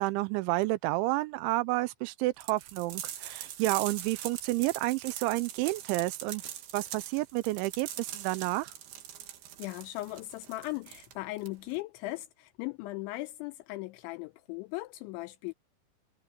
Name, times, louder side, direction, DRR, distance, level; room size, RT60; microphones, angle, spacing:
voice 1, 0.0-8.7, right 20 dB, 85° right, 2.9 m, -30 dB
sound 1, 2.4-11.8, right 11 dB, 65° right, 3.4 m, -42 dB
voice 2, 9.6-15.5, left 19 dB, 85° left, 2.9 m, -38 dB
omnidirectional pair, 5.5 m